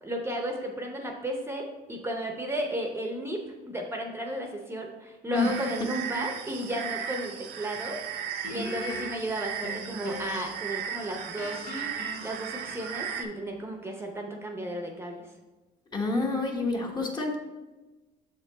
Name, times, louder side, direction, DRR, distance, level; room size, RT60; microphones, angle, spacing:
voice 1, 0.0-8.2 8.5-11.7 12.2-15.3, right 1 dB, 15° right, 2 dB, 0.7 m, -34 dB
sound 1, 5.3-13.2, right 8 dB, 80° right, 0.6 m, -36 dB
Guitar, 8.4-10.6 10.9-13.2, left 1 dB, 80° left, 1.5 m, -40 dB
voice 2, 15.9-17.4, left 3 dB, 25° left, 1 dB, 1.0 m, -28 dB
6.6 x 4.4 x 3.9 m, 1.2 s
cardioid pair, 110°, 17 cm